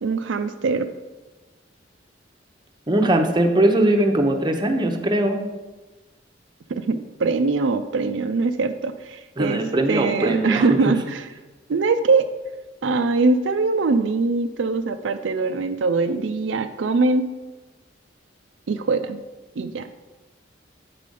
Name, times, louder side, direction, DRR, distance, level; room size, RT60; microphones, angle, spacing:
voice 1, 0.0-0.9 6.7-9.6 9.9-11.3 11.7-12.3 12.8-17.3 18.7-19.2 19.6-19.9, right 3 dB, 80° right, 8 dB, 0.4 m, -22 dB
voice 2, 2.9-5.4 9.4-11.0, right 1 dB, 25° right, 4 dB, 0.8 m, -20 dB
8.5 x 4.9 x 5.3 m, 1.2 s
head